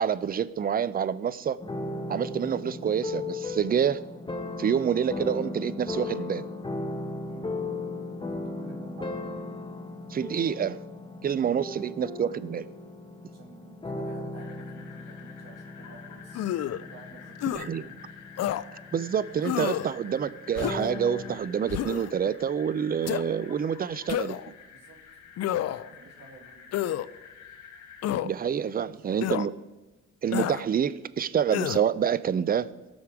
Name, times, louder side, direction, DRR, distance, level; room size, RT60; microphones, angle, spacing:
voice 1, 0.0-1.6 2.1-4.0 4.6-6.4 10.1-10.8 11.2-12.7 17.5-17.8 18.9-24.4 28.2-29.5 30.2-32.7, right 8 dB, 30° right, 17 dB, 0.5 m, -27 dB
sound 1, 1.6-21.4, left 2 dB, 15° left, 1.0 m, -37 dB
voice 2, 7.3-7.6 8.2-9.2 13.3-16.5 16.8-18.0 24.7-25.0 25.7-27.2 28.6-29.3, right 4 dB, 60° right, 2 dB, 2.5 m, -51 dB
sound 2, 14.3-28.1, left 7 dB, 80° left, 1.7 m, -49 dB
sound 3, 16.3-16.8 17.4-17.7 18.4-18.6 19.4-19.9 20.6-20.9 21.7-22.1 23.1-23.2 24.1-24.5 25.4-25.9 26.7-27.1 28.0-28.3 29.2-29.5 30.3-30.6 31.5-31.9, left 12 dB, 60° left, 0.5 m, -29 dB
17.5 x 6.3 x 4.8 m, 1.1 s
cardioid pair, 90°, 30 cm